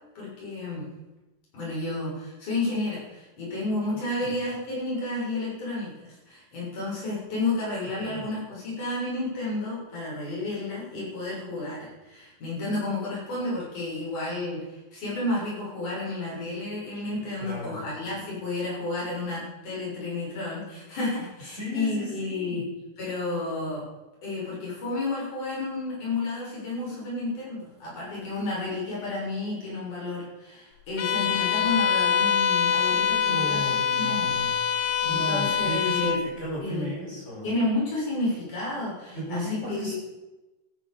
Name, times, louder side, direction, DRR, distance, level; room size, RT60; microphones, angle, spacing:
voice 1, 0.2-0.9 1.5-22.7 23.0-23.8 24.2-33.7 34.0-34.3 35.0-36.2 36.6-37.2 37.4-39.9, left 2 dB, 50° left, -6 dB, 8.2 m, -31 dB
voice 2, 3.9-4.3 8.0-8.2 17.4-17.8 21.5-22.6 33.2-34.6 35.0-37.5 39.1-39.9, equal, 15° left, -5 dB, 6.6 m, -35 dB
Bowed string instrument, 31.0-36.3, left 7 dB, 75° left, 1.9 m, -24 dB
14.5 x 10.5 x 7.0 m, 1.0 s
omnidirectional pair, 4.7 m